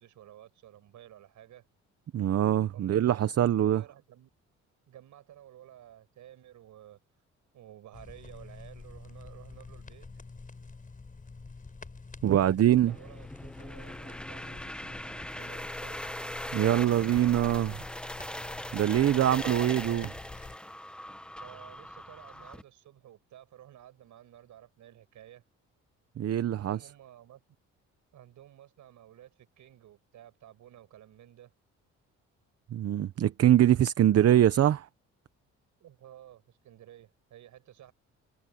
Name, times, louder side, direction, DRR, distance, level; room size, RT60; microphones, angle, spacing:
voice 1, 0.0-1.7 2.7-4.3 4.9-7.0 7.5-10.1 12.2-16.0 21.4-25.4 26.5-27.4 28.1-31.5 35.8-37.9, right 12 dB, 75° right, 5.9 m, -53 dB
voice 2, 2.1-3.8 12.2-12.9 16.5-17.8 18.7-20.1 26.2-26.8 32.7-34.9, right 11 dB, 55° right, 0.9 m, -23 dB
sound 1, 7.9-20.6, left 4 dB, 25° left, 6.0 m, -47 dB
sound 2, 12.9-22.6, left 1 dB, 5° left, 1.0 m, -40 dB
cardioid pair, 90°, 30 cm